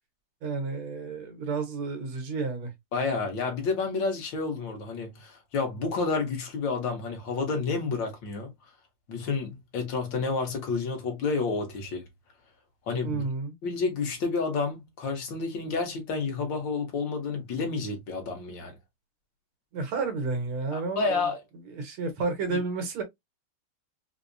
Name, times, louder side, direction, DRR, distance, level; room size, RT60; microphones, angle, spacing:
voice 1, 0.4-2.7 13.0-13.5 19.7-21.2 21.7-23.0, right 4 dB, 90° right, 2.0 m, -31 dB
voice 2, 2.9-8.5 9.1-12.0 12.9-13.2 13.6-18.8 20.7-21.4 22.5-22.6, left 4 dB, 65° left, 1.7 m, -30 dB
4.5 x 2.1 x 2.5 m
omnidirectional pair, 2.3 m